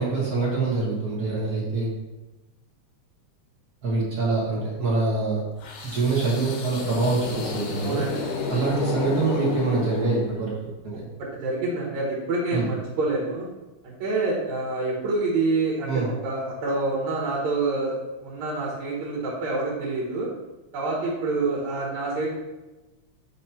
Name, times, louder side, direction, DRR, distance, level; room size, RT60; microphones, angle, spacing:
voice 1, 0.0-1.9 3.8-5.4 5.8-8.1 8.5-10.5 12.5-12.7 15.9-16.0, right 3 dB, 50° right, -5 dB, 1.1 m, -25 dB
sound 1, 5.6-10.7, left 4 dB, 75° left, 2.1 m, -31 dB
voice 2, 7.8-8.2 11.2-13.5 13.8-17.9 18.2-20.3 20.7-22.3, right 3 dB, 70° right, -4 dB, 2.4 m, -27 dB
5.9 x 3.1 x 5.5 m, 1.1 s
omnidirectional pair, 3.5 m